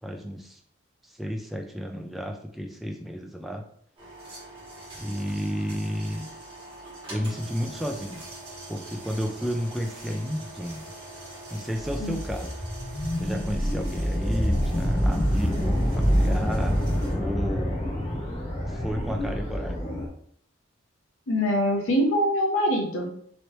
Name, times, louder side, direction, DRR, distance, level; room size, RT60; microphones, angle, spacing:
voice 1, 0.0-0.6 1.0-3.6 5.0-6.3 7.1-8.2 8.7-10.9 11.5-12.6 13.2-16.8 17.1-17.8 18.7-19.8, equal, ahead, 2 dB, 0.3 m, -32 dB
sound 1, 4.0-17.1, right 1 dB, 25° right, 1.4 m, -43 dB
sound 2, 11.8-20.1, equal, 35° left, 0.7 m, -26 dB
voice 2, 21.3-23.1, equal, 80° left, 1 dB, 0.6 m, -24 dB
3.1 x 2.7 x 3.0 m, 0.63 s
head